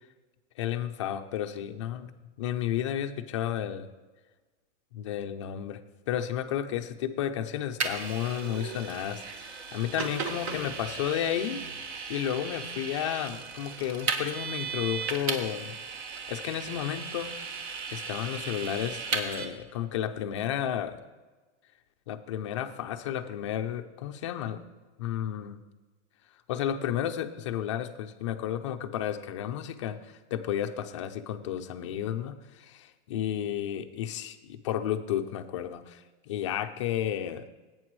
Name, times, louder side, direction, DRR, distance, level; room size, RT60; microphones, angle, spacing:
voice 1, 0.6-3.9 4.9-5.8 6.1-15.8 16.3-17.3 17.9-21.0 22.1-24.6 25.0-25.6 26.5-37.5, left 10 dB, 25° left, 7 dB, 0.4 m, -32 dB
Vehicle, 7.8-19.5, right 5 dB, 60° right, 1.5 m, -36 dB
17.0 x 8.8 x 3.1 m, 1.3 s
supercardioid pair, 170°, 36 cm